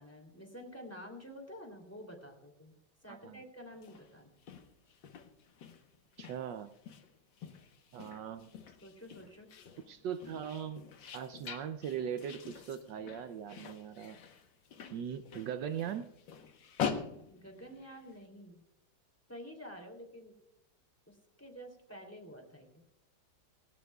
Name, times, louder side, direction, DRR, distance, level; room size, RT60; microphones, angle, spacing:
voice 1, 0.0-2.8 3.0-4.3 8.8-9.5 17.3-18.6 19.3-20.4 21.1-22.8, equal, 5° left, 3 dB, 2.8 m, -49 dB
voice 2, 3.1-3.4 6.2-6.7 7.9-8.5 9.9-10.8 11.1-14.2 14.9-16.1, right 8 dB, 75° right, 9 dB, 1.3 m, -40 dB
sound 1, 3.7-18.2, left 7 dB, 80° left, 1.9 m, -45 dB
18.5 x 17.0 x 2.3 m, 0.81 s
omnidirectional pair, 2.1 m